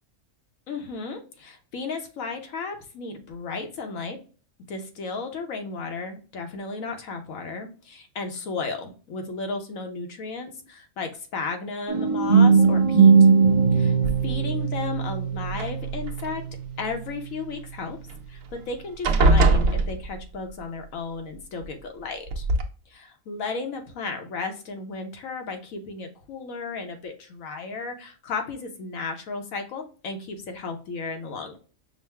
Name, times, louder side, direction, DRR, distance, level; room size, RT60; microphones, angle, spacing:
voice 1, 0.7-4.2 4.7-13.1 13.7-13.9 14.2-16.4 16.8-18.0 18.3-22.4 22.9-31.6, left 4 dB, 75° left, 5 dB, 1.2 m, -34 dB
sound 1, 11.9-17.8, right 5 dB, 25° right, 0.9 m, -20 dB
sound 2, 14.0-14.6 15.5-16.3 18.1-18.2 18.5-18.7 19.0-20.5 21.6-21.7 22.3-22.6, right 2 dB, 80° right, 1.1 m, -22 dB
5.4 x 2.1 x 3.2 m, 0.37 s
omnidirectional pair, 1.4 m